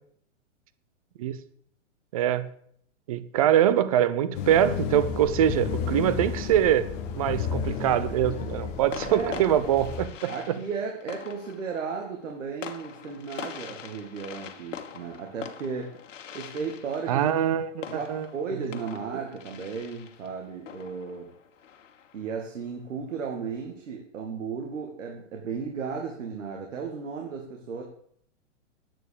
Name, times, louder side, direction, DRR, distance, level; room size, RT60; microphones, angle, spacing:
voice 1, 2.1-2.5 3.1-6.9 7.2-10.6 17.1-18.3, right 11 dB, 30° right, 14 dB, 0.6 m, -24 dB
sound 1, 4.3-10.1, left 7 dB, 15° left, 0.7 m, -32 dB
sound 2, 7.6-8.0 8.9-22.3, left 8 dB, 75° left, 1.6 m, -43 dB
voice 2, 9.0-9.4 10.3-15.9 16.3-17.3 17.9-21.3 22.1-27.8, right 5 dB, 80° right, 1 dB, 2.4 m, -35 dB
9.6 x 9.0 x 6.8 m, 0.65 s
hypercardioid pair, 165°, 37 cm